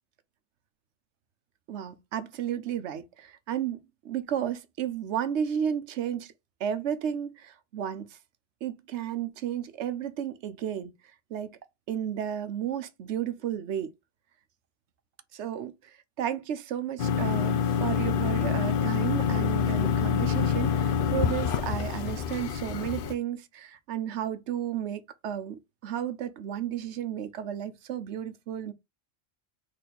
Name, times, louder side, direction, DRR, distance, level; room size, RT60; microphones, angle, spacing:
voice 1, 1.7-6.3 6.6-8.2 8.6-10.9 11.3-11.6 11.9-13.9 15.3-28.7, right 9 dB, 80° right, 1.0 m, -33 dB
sound 1, 17.0-23.1, left 7 dB, 60° left, 0.7 m, -26 dB
4.2 x 3.2 x 3.8 m
omnidirectional pair, 1.2 m